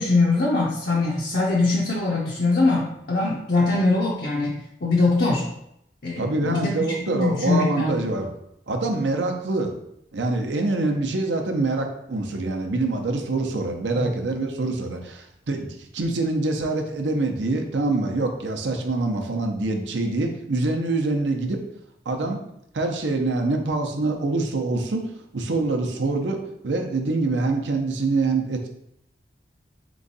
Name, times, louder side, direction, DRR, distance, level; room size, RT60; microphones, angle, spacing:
voice 1, 0.0-5.4 6.0-6.7 7.1-8.0 14.0-14.1 22.2-22.3, left 3 dB, 55° left, -4 dB, 0.6 m, -22 dB
voice 2, 6.2-8.3 8.7-9.7 10.1-21.6 22.1-22.4 22.7-28.7, right 2 dB, 80° right, 3 dB, 0.6 m, -25 dB
3.6 x 3.1 x 4.0 m, 0.77 s
head